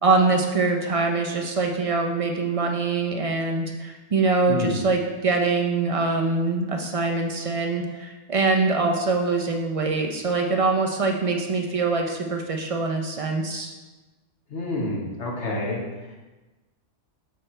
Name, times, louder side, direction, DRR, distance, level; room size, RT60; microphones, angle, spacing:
voice 1, 0.0-13.7, right 3 dB, 45° right, 2 dB, 0.4 m, -24 dB
voice 2, 4.5-4.8 14.5-15.8, left 2 dB, 70° left, -2 dB, 1.4 m, -28 dB
6.8 x 3.2 x 4.3 m, 1.2 s
omnidirectional pair, 1.2 m